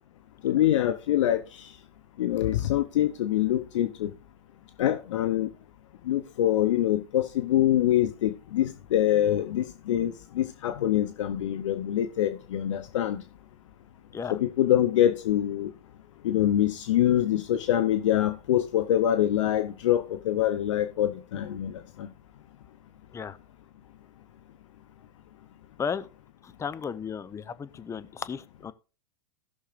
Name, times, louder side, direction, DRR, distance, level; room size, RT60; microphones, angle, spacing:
voice 1, 0.4-1.7 2.2-4.1 4.8-5.5 6.1-13.2 14.3-15.7 16.2-22.1, left 12 dB, 75° left, 0.8 m, -25 dB
voice 2, 26.4-28.7, left 6 dB, 20° left, 0.7 m, -34 dB
18.0 x 6.5 x 2.5 m
hypercardioid pair, 100°, 16 cm